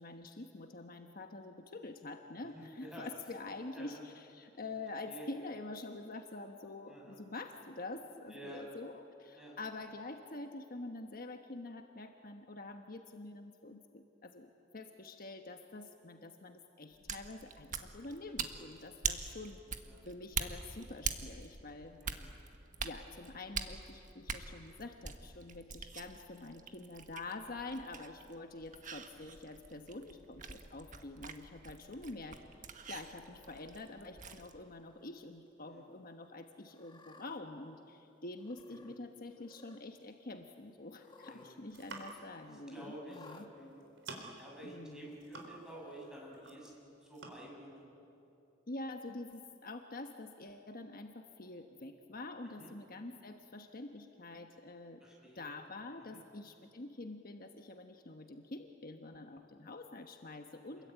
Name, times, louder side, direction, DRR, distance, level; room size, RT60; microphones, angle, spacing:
voice 1, 0.0-19.6 20.0-22.0 22.8-32.4 32.8-43.5 44.6-45.1 48.7-55.0 55.3-60.9, left 2 dB, 50° left, 5 dB, 1.2 m, -47 dB
voice 2, 2.4-3.1 3.7-4.0 5.0-5.3 6.9-7.2 8.3-8.6 9.3-9.6 19.8-20.1 22.0-22.3 35.7-35.8 41.2-41.5 42.4-43.8 44.4-47.9 52.6-52.7 55.0-55.4 56.1-56.2 60.8-60.9, right 1 dB, 5° right, -3 dB, 7.3 m, -50 dB
sound 1, 16.9-34.5, right 6 dB, 45° right, 1.5 m, -44 dB
Cat, 33.3-33.9 34.6-35.1 35.5-35.6 36.6-37.4 38.4-39.0 39.3-39.9 40.9-41.6 41.9-42.0 43.1-43.5 44.4-44.5 45.6-46.2, left 3 dB, 25° left, 1.3 m, -59 dB
sound 2, 41.6-42.4 43.3-43.5 43.8-44.5 44.9-45.8 46.1-46.8 47.1-47.3, right 3 dB, 80° right, 3.9 m, -49 dB
28.0 x 21.5 x 9.1 m, 2.8 s
head